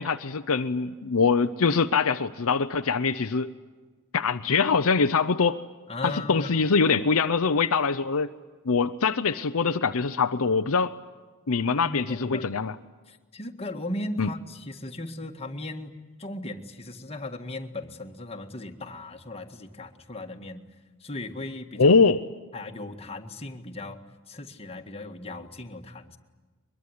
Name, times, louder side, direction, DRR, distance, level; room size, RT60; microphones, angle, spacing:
voice 1, 0.0-3.5 4.1-5.6 6.0-8.3 8.7-10.9 11.5-12.8 14.2-14.3 21.8-22.2, left 5 dB, 70° left, 8 dB, 0.8 m, -23 dB
voice 2, 5.9-6.6 11.8-12.5 13.1-20.6 21.0-21.9 22.5-24.0 24.3-26.2, left 2 dB, 25° left, 4 dB, 1.9 m, -37 dB
23.5 x 22.0 x 9.8 m, 1.3 s
head